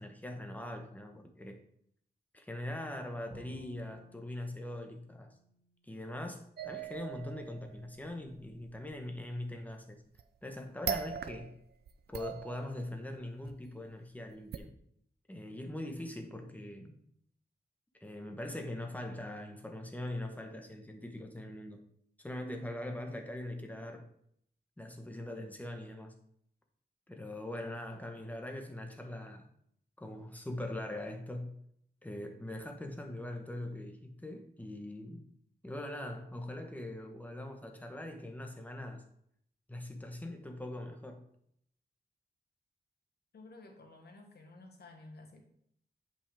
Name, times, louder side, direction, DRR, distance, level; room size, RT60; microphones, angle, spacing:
voice 1, 0.0-1.6 2.3-5.3 5.8-10.0 10.4-11.5 12.1-14.7 15.3-16.9 18.0-21.8 22.2-24.0 24.8-26.1 27.1-29.5 30.0-31.6 32.0-35.2 35.6-39.0 39.7-41.2, left 1 dB, 10° left, 3 dB, 1.1 m, -42 dB
Bowed string instrument, 3.3-6.4, equal, 25° right, 1.8 m, -58 dB
sound 1, 6.6-8.9 10.1-10.5 10.8-11.6 11.9-13.0 13.5-13.6 14.5-14.6, right 7 dB, 85° right, 0.5 m, -40 dB
voice 2, 43.3-45.4, left 2 dB, 90° left, 4 dB, 1.3 m, -53 dB
8.4 x 5.5 x 3.4 m, 0.69 s
wide cardioid pair, 125°, 16 cm